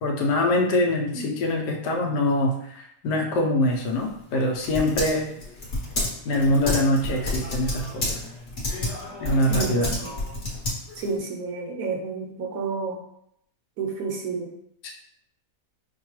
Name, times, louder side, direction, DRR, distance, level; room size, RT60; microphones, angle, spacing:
voice 1, 0.0-5.3 6.2-8.2 9.2-9.9 14.8-14.9, left 1 dB, 85° left, 1 dB, 1.3 m, -24 dB
Typing, 3.7-11.2, left 2 dB, 45° left, 1.3 m, -31 dB
voice 2, 9.5-10.1 11.0-13.0 13.8-14.5, right 4 dB, 70° right, 1 dB, 1.0 m, -30 dB
5.5 x 2.2 x 2.9 m, 0.74 s
omnidirectional pair, 1.8 m